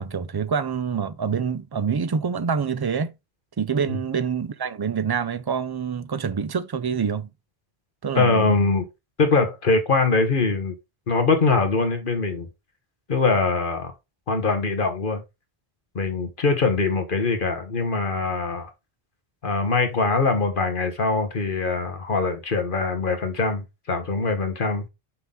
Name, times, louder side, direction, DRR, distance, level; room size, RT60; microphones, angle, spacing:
voice 1, 0.0-3.1 3.6-7.3 8.0-8.5, right 6 dB, 40° right, 0.3 m, -26 dB
voice 2, 8.1-8.9 9.2-10.7 11.1-12.5 13.1-13.9 14.3-15.2 15.9-18.7 19.4-24.8, left 3 dB, 55° left, 1.4 m, -22 dB
5.7 x 5.6 x 3.7 m
omnidirectional pair, 1.0 m